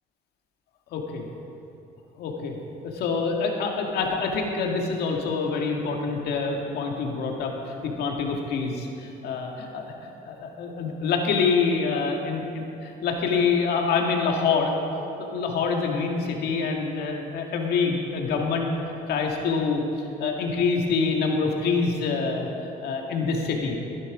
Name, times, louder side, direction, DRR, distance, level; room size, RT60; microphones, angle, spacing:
voice 1, 0.9-1.3 2.2-2.6 2.8-14.7 15.2-18.7 19.1-23.8, left 4 dB, 70° left, 1 dB, 2.0 m, -26 dB
15.0 x 11.0 x 4.9 m, 2.7 s
cardioid pair, 110°, 17 cm